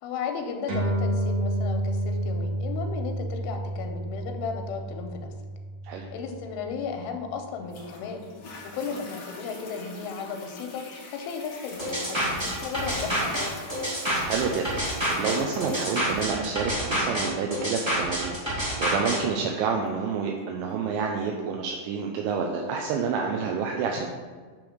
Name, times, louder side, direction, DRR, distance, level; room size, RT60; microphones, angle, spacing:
voice 1, 0.0-5.3 6.1-8.2 8.6-13.5, left 5 dB, 85° left, 4 dB, 3.1 m, -35 dB
sound 1, 0.7-7.5, right 1 dB, 45° right, 2.0 m, -30 dB
Toilet flush, 7.7-20.7 21.3-21.4, left 3 dB, 65° left, 1.5 m, -46 dB
sound 2, 11.8-19.2, equal, 25° right, 0.6 m, -28 dB
voice 2, 14.2-18.4 18.8-24.1, right 5 dB, 80° right, 1 dB, 2.5 m, -29 dB
9.2 x 3.4 x 6.4 m, 1.5 s
omnidirectional pair, 5.5 m